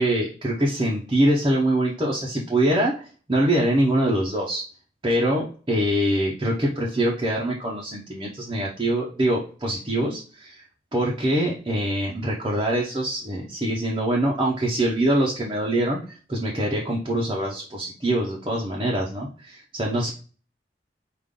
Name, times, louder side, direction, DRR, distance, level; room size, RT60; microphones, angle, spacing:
voice 1, 0.0-4.6 5.0-10.6 10.9-20.1, right 1 dB, 25° right, -4 dB, 0.7 m, -24 dB
5.2 x 2.5 x 3.6 m, 0.40 s
head